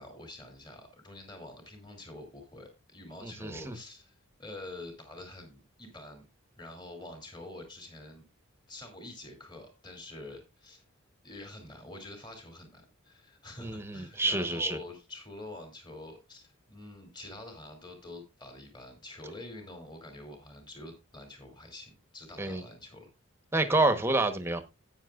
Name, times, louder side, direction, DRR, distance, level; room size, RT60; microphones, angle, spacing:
voice 1, 0.0-6.2 6.6-8.3 8.7-10.8 11.2-23.1, left 2 dB, 20° left, 2.7 m, -46 dB
voice 2, 3.2-3.8 13.6-14.8 22.4-22.6 23.5-24.6, right 2 dB, 10° right, 1.0 m, -28 dB
13.0 x 9.0 x 2.4 m
head